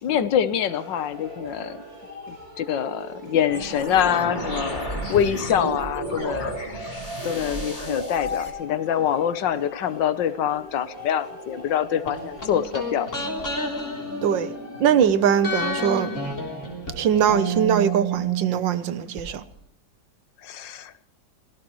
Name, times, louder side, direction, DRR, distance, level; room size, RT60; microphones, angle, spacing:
voice 1, 0.0-1.8 2.3-6.8 7.2-13.3 20.4-20.9, left 9 dB, 80° left, 1.6 m, -25 dB
sound 1, 0.7-16.3, equal, 55° right, 6.6 m, -39 dB
sound 2, 3.5-8.5, right 1 dB, 25° left, 3.6 m, -32 dB
sound 3, 12.1-15.0 15.4-19.2 19.5-19.6, right 2 dB, 40° left, 4.0 m, -30 dB
voice 2, 14.2-14.5 14.8-16.1 17.0-19.4, right 8 dB, 85° right, 1.7 m, -21 dB
25.5 x 17.5 x 3.1 m
omnidirectional pair, 2.0 m